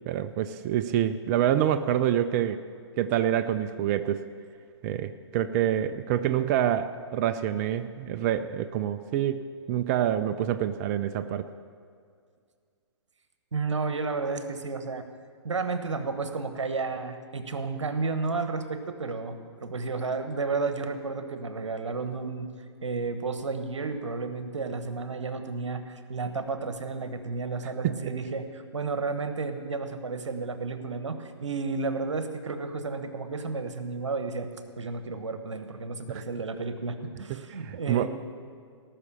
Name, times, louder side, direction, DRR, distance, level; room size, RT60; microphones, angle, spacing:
voice 1, 0.1-2.6 3.0-4.2 4.8-11.5 27.8-27.9 36.1-36.2 37.3-38.1, right 10 dB, 35° right, 10 dB, 0.5 m, -27 dB
voice 2, 13.5-15.0 15.4-22.5 22.8-34.5 34.8-38.1, right 4 dB, 85° right, 8 dB, 1.2 m, -32 dB
18.5 x 6.1 x 6.9 m, 2.2 s
hypercardioid pair, 130°, 15 cm